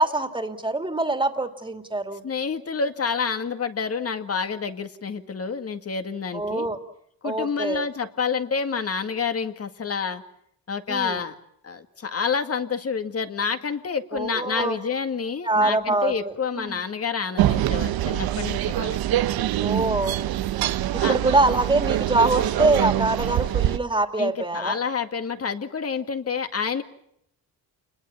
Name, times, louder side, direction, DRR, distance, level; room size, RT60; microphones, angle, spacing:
voice 1, 0.0-2.2 6.3-6.8 7.2-7.9 10.9-11.2 14.1-14.8 15.5-16.8 19.6-20.2 20.9-24.8, right 2 dB, 15° right, 7 dB, 2.7 m, -24 dB
voice 2, 2.2-6.7 7.2-10.2 10.7-11.3 11.6-19.0 21.0-21.1 24.2-26.8, left 5 dB, 40° left, 8 dB, 2.1 m, -28 dB
sound 1, 17.4-23.8, right 13 dB, 90° right, 0.9 m, -24 dB
28.5 x 21.0 x 7.2 m, 0.74 s
cardioid pair, 105°, 35 cm